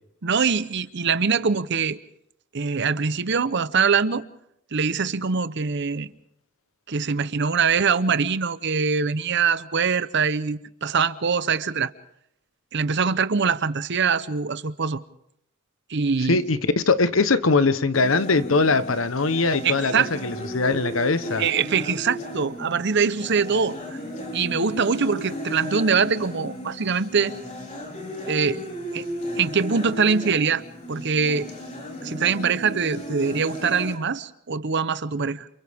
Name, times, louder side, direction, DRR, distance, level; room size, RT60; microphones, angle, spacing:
voice 1, 0.2-2.0 2.5-4.3 4.7-6.1 6.9-11.9 12.7-15.0 15.9-16.4 19.6-20.1 21.4-23.8 24.3-27.3 28.3-28.7 28.9-29.1 29.4-30.6 30.9-31.5 32.0-35.5, right 5 dB, 60° right, 0.8 m, -23 dB
voice 2, 16.3-19.9 20.2-21.4, left 3 dB, 80° left, 1.1 m, -21 dB
sound 1, 17.9-33.9, equal, 35° left, 4.3 m, -35 dB
29.5 x 28.0 x 3.6 m
head